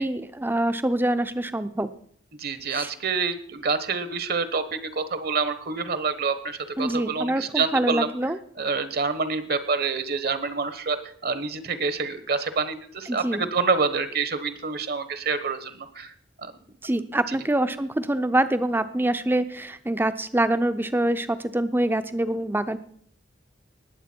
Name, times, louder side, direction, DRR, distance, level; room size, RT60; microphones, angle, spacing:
voice 1, 0.0-1.9 2.7-2.9 6.8-8.4 13.1-13.5 16.8-22.8, right 1 dB, 10° right, 11 dB, 0.6 m, -25 dB
voice 2, 2.4-8.1 8.6-11.0 11.2-16.1 16.4-16.5 17.3-17.4, right 4 dB, 55° right, 11 dB, 1.1 m, -27 dB
19.5 x 7.9 x 4.5 m, 0.64 s
head